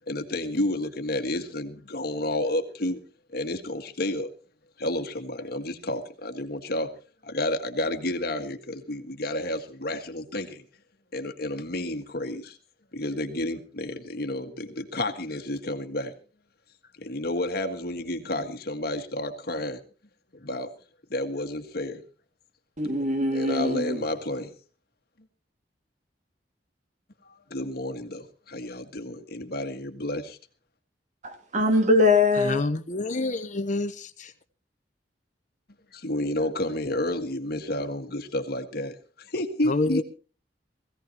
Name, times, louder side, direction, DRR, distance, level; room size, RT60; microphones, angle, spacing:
voice 1, 0.1-3.0 3.3-4.3 4.8-6.9 7.2-10.6 11.1-12.6 12.9-16.1 17.0-19.8 20.4-20.7 21.1-22.0 23.3-24.5 27.5-30.4 36.0-40.0, left 1 dB, 60° left, 1.8 m, -30 dB
voice 2, 22.8-24.1 31.2-32.6, left 2 dB, 45° right, 2.3 m, -22 dB
voice 3, 32.4-34.3 39.7-40.0, left 2 dB, 45° left, 0.9 m, -28 dB
21.0 x 16.0 x 3.0 m
head